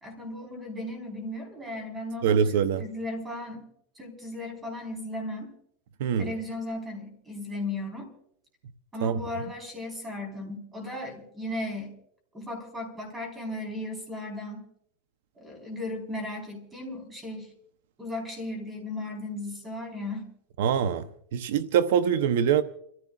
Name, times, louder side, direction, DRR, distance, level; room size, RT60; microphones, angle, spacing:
voice 1, 0.0-3.7 4.0-5.5 6.2-8.1 8.9-11.9 12.3-14.6 15.3-17.5 18.0-20.3, left 1 dB, 15° right, 4.2 m, -36 dB
voice 2, 2.2-2.9 6.0-6.3 9.0-9.2 20.6-21.1 21.3-22.6, right 8 dB, 70° right, 0.7 m, -24 dB
30.0 x 14.5 x 2.4 m
supercardioid pair, 150°, 0 cm